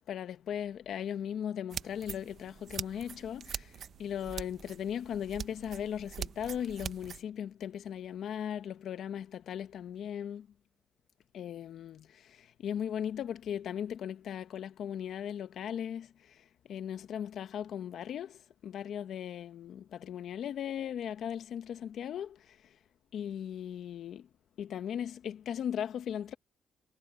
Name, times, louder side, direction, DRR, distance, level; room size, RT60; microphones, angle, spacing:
voice 1, 0.1-10.5 11.3-22.8 23.1-24.3 24.6-26.3, left 9 dB, 70° left, 1.3 m, -38 dB
sound 1, 1.7-7.2, right 8 dB, 55° right, 1.2 m, -43 dB
cardioid pair, 90°, 0 cm